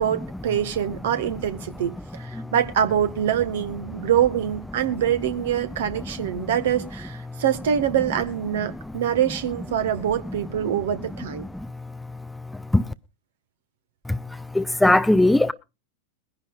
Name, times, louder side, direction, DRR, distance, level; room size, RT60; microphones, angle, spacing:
voice 1, 0.0-1.9 2.2-11.4, right 9 dB, 55° right, 1.4 m, -24 dB
voice 2, 14.5-15.5, left 1 dB, 5° left, 0.6 m, -18 dB
22.5 x 10.5 x 2.4 m
figure-of-eight pair, 90°, 0 cm